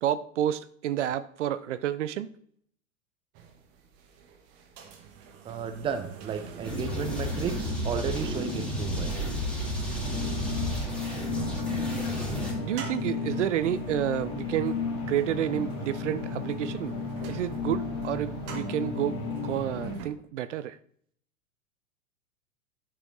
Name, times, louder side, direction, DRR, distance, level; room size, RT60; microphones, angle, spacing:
voice 1, 0.0-2.3 12.6-14.8 15.1-17.0 17.3-20.8, right 11 dB, 60° right, 0.5 m, -30 dB
sound 1, 3.3-20.1, right 7 dB, 35° right, 1.4 m, -46 dB
voice 2, 5.4-9.2, right 7 dB, 15° right, 0.5 m, -33 dB
sound 2, 6.6-12.5, equal, ahead, 2.5 m, -32 dB
sound 3, 10.0-19.9, left 4 dB, 35° left, 2.2 m, -34 dB
11.0 x 4.8 x 3.1 m
figure-of-eight pair, 100°, 41 cm